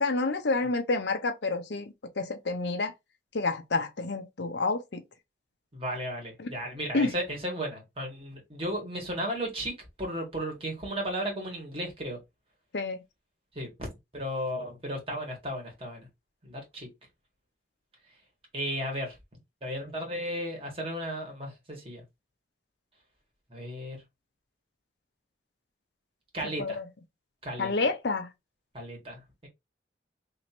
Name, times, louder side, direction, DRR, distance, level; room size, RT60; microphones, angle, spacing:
voice 1, 0.0-2.9 3.3-5.0 6.4-6.5 6.9-7.1 12.7-13.0 26.6-26.8 27.6-28.3, left 3 dB, 65° left, 0.7 m, -29 dB
voice 2, 5.7-9.7 10.0-12.2 13.5-13.9 14.1-16.1 16.4-16.9 18.5-19.2 19.6-22.0 23.5-24.0 26.3-26.8 27.4-27.7 28.7-29.5, equal, 30° right, 1.7 m, -34 dB
3.0 x 2.8 x 4.4 m
head